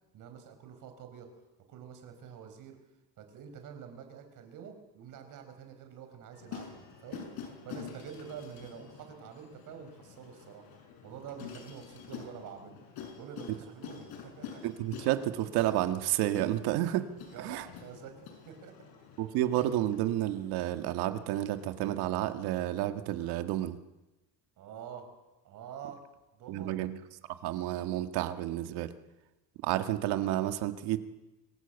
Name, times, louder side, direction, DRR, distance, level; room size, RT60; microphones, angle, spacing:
voice 1, 0.1-1.3 1.7-2.8 3.2-10.7 11.0-12.8 13.1-14.6 17.3-18.8 24.6-25.1 25.4-26.0 26.3-26.8, right 7 dB, 50° right, 6 dB, 5.0 m, -47 dB
sound 1, 6.3-22.1, left 7 dB, 65° left, 6.3 m, -48 dB
voice 2, 14.6-17.1 17.4-17.7 19.2-23.8 26.5-27.0 27.4-28.9 29.6-31.0, right 13 dB, 70° right, 9 dB, 1.9 m, -30 dB
25.0 x 18.5 x 8.2 m, 1.1 s
cardioid pair, 160°, 40 cm